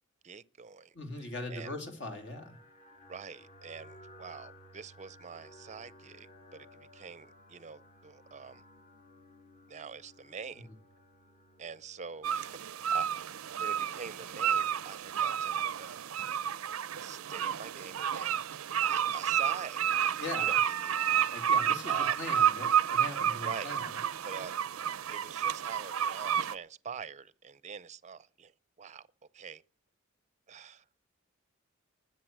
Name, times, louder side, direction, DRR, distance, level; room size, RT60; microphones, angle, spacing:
voice 1, 0.2-1.7 3.1-8.6 9.7-10.7 11.6-12.6 12.9-13.1 13.6-16.1 17.0-18.4 18.9-22.3 23.4-23.8 24.2-28.5 28.8-29.1 29.3-29.6 30.5-30.8, right 6 dB, 35° right, 0.6 m, -45 dB
voice 2, 0.9-2.6 20.2-20.5 21.3-23.9, left 2 dB, 60° left, 2.8 m, -40 dB
sound 1, 2.1-21.8, left 1 dB, 35° left, 1.6 m, -59 dB
sound 2, 12.2-26.5, right 9 dB, 90° right, 0.5 m, -30 dB
19.5 x 6.9 x 6.1 m
head